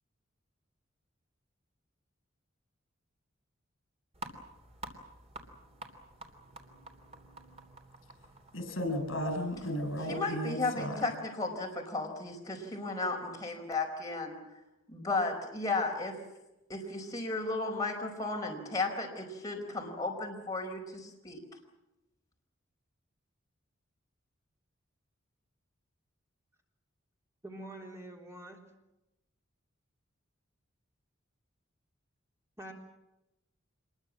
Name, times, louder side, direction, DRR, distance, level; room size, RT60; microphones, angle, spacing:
sound 1, 4.1-10.3, right 2 dB, 30° right, 3.3 m, -50 dB
voice 1, 8.5-11.1, equal, 75° left, 6 dB, 6.9 m, -34 dB
voice 2, 10.1-14.4 14.9-16.2 16.7-21.4, left 3 dB, 20° left, 0 dB, 4.9 m, -34 dB
voice 3, 27.4-28.6 32.6-32.7, right 1 dB, 15° right, 0 dB, 3.6 m, -45 dB
26.5 x 21.5 x 7.4 m, 0.94 s
head